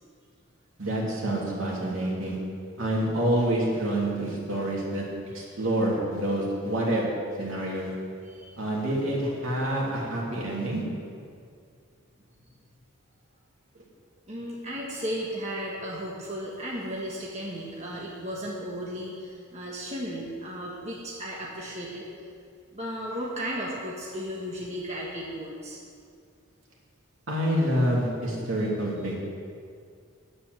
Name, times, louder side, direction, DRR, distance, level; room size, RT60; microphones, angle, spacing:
voice 1, 0.8-2.4 2.8-5.0 5.3-7.0 7.4-7.9 8.6-10.8 27.3-29.2, right 1 dB, 65° right, -4 dB, 3.1 m, -27 dB
voice 2, 8.2-8.6 14.3-22.1 22.7-25.8, equal, 30° right, -4 dB, 1.5 m, -35 dB
10.0 x 8.5 x 8.0 m, 2.2 s
head